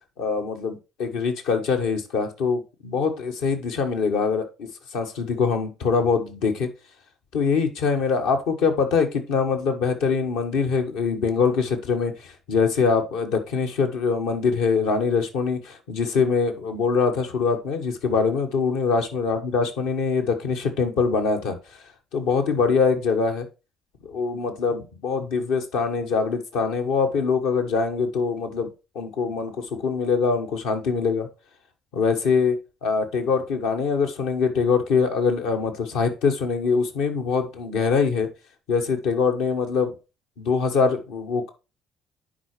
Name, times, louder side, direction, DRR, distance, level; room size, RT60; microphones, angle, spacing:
voice 1, 0.2-6.7 7.3-21.5 22.1-23.5 24.0-28.7 28.9-31.3 31.9-38.3 38.7-39.9 40.4-41.5, left 5 dB, 65° left, 4 dB, 1.3 m, -23 dB
10.0 x 5.0 x 3.1 m, 0.29 s
figure-of-eight pair, 50°, 0 cm